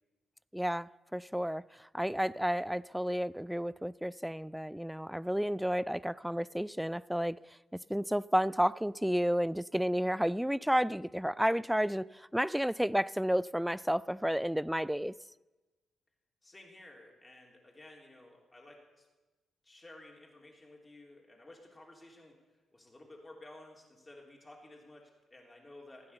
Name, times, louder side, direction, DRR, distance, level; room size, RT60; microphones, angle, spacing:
voice 1, 0.5-1.6 1.9-7.4 7.9-15.1, equal, 5° right, 0.3 m, -31 dB
voice 2, 16.4-19.1 19.6-26.1, left 1 dB, 20° left, 3.4 m, -54 dB
15.5 x 9.6 x 6.8 m
hypercardioid pair, 40°, 0 cm